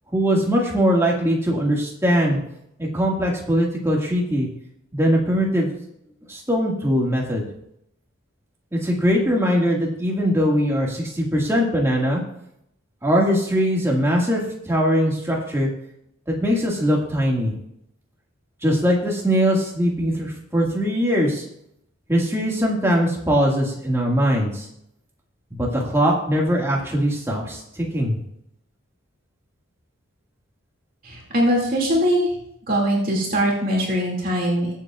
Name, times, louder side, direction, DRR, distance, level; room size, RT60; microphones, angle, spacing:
voice 1, 0.1-2.4 2.8-4.5 4.9-5.7 6.3-7.5 8.7-12.2 13.0-15.7 16.3-17.5 18.6-21.5 22.1-24.7 25.5-28.2, equal, 15° right, -2 dB, 1.9 m, -21 dB
voice 2, 31.0-32.3 32.7-34.7, equal, 45° right, -3 dB, 2.4 m, -21 dB
22.0 x 7.4 x 2.4 m, 0.76 s
head